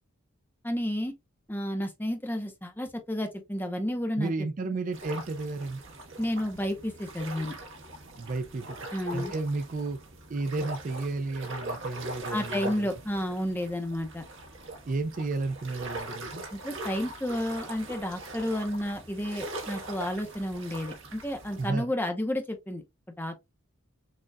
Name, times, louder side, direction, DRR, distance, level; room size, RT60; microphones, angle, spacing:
voice 1, 0.6-1.1 1.5-4.7 6.2-7.6 8.9-9.3 12.3-14.3 16.5-23.4, left 1 dB, 10° left, 0.7 m, -31 dB
voice 2, 4.2-5.8 8.1-8.8 9.1-10.0 10.3-12.9 14.9-16.4 21.6-21.9, right 3 dB, 35° right, 0.4 m, -32 dB
sound 1, 4.9-21.7, right 2 dB, 60° right, 1.3 m, -41 dB
6.4 x 2.3 x 2.2 m
head